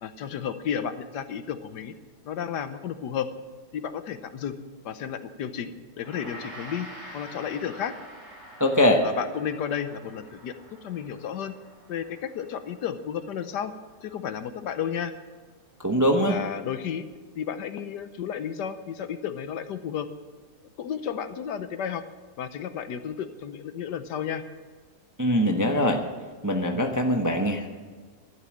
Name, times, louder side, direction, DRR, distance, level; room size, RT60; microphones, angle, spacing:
voice 1, 0.0-1.9 2.2-3.3 3.7-4.5 4.8-6.9 7.1-7.9 9.0-10.5 10.8-11.6 11.9-13.7 14.0-15.1 16.3-17.1 17.4-20.1 20.8-22.0 22.4-24.4, left 8 dB, 70° left, 11 dB, 1.3 m, -32 dB
Gong, 6.0-15.3, right 1 dB, 35° right, 4.5 m, -47 dB
voice 2, 8.6-9.0 15.8-16.4 25.2-26.0 26.4-27.7, equal, 15° right, 3 dB, 0.8 m, -22 dB
12.5 x 11.5 x 7.4 m, 1.5 s
omnidirectional pair, 1.9 m